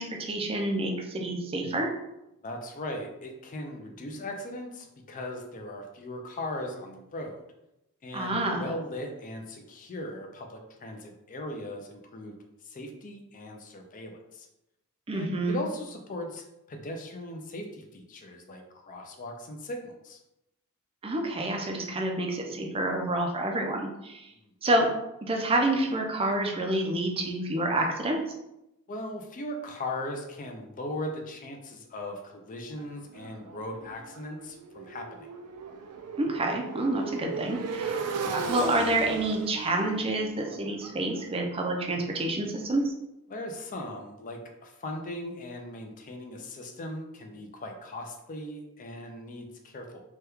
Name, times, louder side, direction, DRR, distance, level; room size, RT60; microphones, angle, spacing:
voice 1, 0.0-1.9 8.1-8.7 15.1-15.6 21.0-24.3 24.6-24.9 25.3-28.2 36.2-42.9, right 1 dB, 25° right, 2 dB, 0.4 m, -28 dB
voice 2, 2.4-7.4 8.0-12.4 12.6-14.5 15.1-20.2 24.4-24.5 28.9-35.3 43.3-50.0, left 1 dB, 35° left, 3 dB, 0.4 m, -38 dB
Motorcycle, 32.8-42.6, right 4 dB, 90° right, 0.4 m, -37 dB
2.9 x 2.3 x 3.4 m, 0.89 s
head